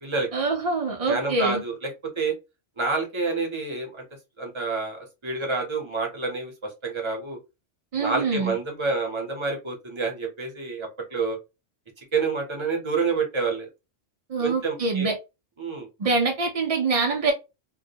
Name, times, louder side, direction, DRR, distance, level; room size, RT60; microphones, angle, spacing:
voice 1, 0.3-1.6 7.9-8.6 14.3-15.2 16.0-17.3, right 3 dB, 70° right, 0.3 m, -24 dB
voice 2, 1.0-1.9 2.2-2.3 2.8-4.0 4.4-7.4 8.0-11.4 12.0-13.7 14.4-15.1 15.6-15.9, right 4 dB, 30° right, 0.6 m, -28 dB
2.2 x 2.0 x 2.7 m
omnidirectional pair, 1.2 m